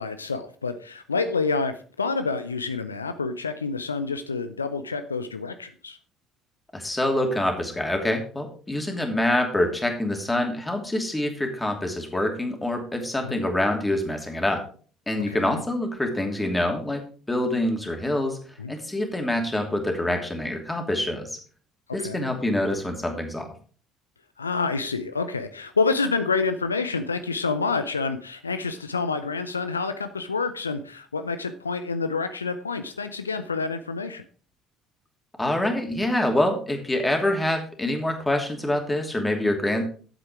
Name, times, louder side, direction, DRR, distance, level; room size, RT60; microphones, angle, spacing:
voice 1, 0.0-6.0 13.2-13.4 15.3-15.6 18.6-18.7 22.0-22.2 24.4-34.3, left 4 dB, 85° left, 9 dB, 0.5 m, -28 dB
voice 2, 6.7-14.6 15.1-17.0 17.3-18.4 18.7-21.4 21.9-23.5 35.4-39.8, left 1 dB, 10° left, 3 dB, 2.8 m, -26 dB
9.0 x 7.9 x 4.8 m, 0.42 s
figure-of-eight pair, 55°, 0 cm